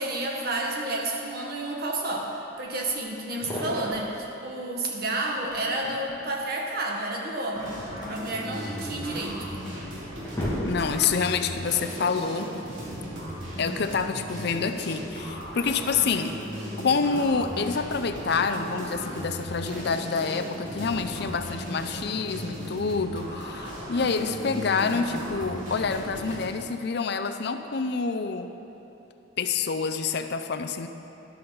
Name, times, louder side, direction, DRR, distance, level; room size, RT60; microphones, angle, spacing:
voice 1, 0.0-7.8 8.1-9.6, right 2 dB, 50° right, 0 dB, 1.5 m, -30 dB
sound 1, 2.9-3.0 3.3-4.0 5.5-6.3 7.6-9.0 9.6-9.7 10.0-11.2, left 1 dB, 20° left, 2.4 m, -34 dB
sound 2, 7.5-26.4, equal, 85° right, 2.9 m, -36 dB
voice 2, 10.6-12.5 13.6-16.4 16.8-28.5 29.4-30.9, left 5 dB, 60° left, 8 dB, 0.5 m, -27 dB
12.5 x 12.0 x 4.0 m, 2.9 s
head